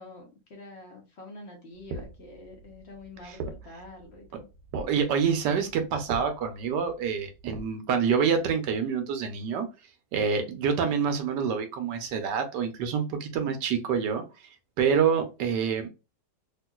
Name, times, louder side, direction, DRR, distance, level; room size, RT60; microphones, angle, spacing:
voice 1, 0.0-4.5, left 2 dB, 50° left, 0.9 m, -46 dB
sound 1, 1.7-7.7, right 3 dB, 70° right, 1.1 m, -41 dB
voice 2, 4.7-9.7 10.1-14.2 14.8-15.9, right 6 dB, 90° right, 1.4 m, -27 dB
3.7 x 2.5 x 2.3 m
omnidirectional pair, 1.8 m